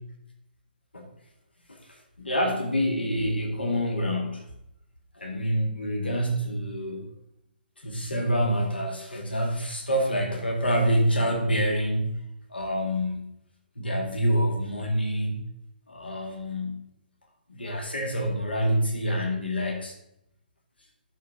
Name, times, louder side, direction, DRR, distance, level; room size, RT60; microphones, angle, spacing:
voice 1, 1.7-4.4 5.2-7.1 7.8-12.2 12.5-13.3 13.8-15.4 15.9-16.8 17.5-19.9, equal, 80° left, 2 dB, 2.1 m, -27 dB
11.5 x 4.7 x 3.8 m, 0.78 s
figure-of-eight pair, 130°, 5 cm